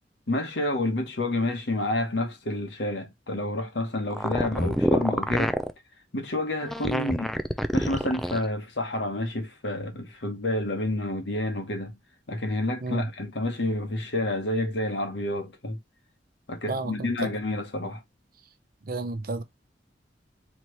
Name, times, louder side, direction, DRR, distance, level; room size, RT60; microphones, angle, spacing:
voice 1, 0.3-5.6 6.1-7.3 7.7-12.0 12.3-15.8 16.5-18.0, left 1 dB, 80° left, 1.3 m, -29 dB
sound 1, 4.1-5.7 6.6-8.4, equal, ahead, 0.3 m, -26 dB
voice 2, 16.7-17.1 18.9-19.4, right 2 dB, 55° right, 0.7 m, -31 dB
4.2 x 3.0 x 3.1 m
head